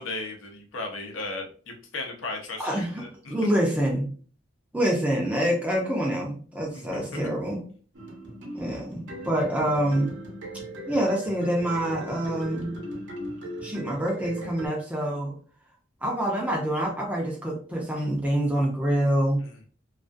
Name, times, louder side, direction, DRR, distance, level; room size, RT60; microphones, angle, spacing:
voice 1, 0.0-3.3 6.7-7.0 12.3-12.4 19.4-19.6, left 3 dB, 90° left, 2 dB, 0.6 m, -36 dB
voice 2, 2.6-3.0 3.3-4.1 4.7-7.6 8.5-10.1 10.9-12.8 13.6-15.3 16.0-19.4, right 1 dB, 5° right, -1 dB, 0.5 m, -26 dB
sound 1, 7.9-14.7, equal, 65° right, 0.7 m, -38 dB
2.3 x 2.3 x 2.5 m, 0.43 s
head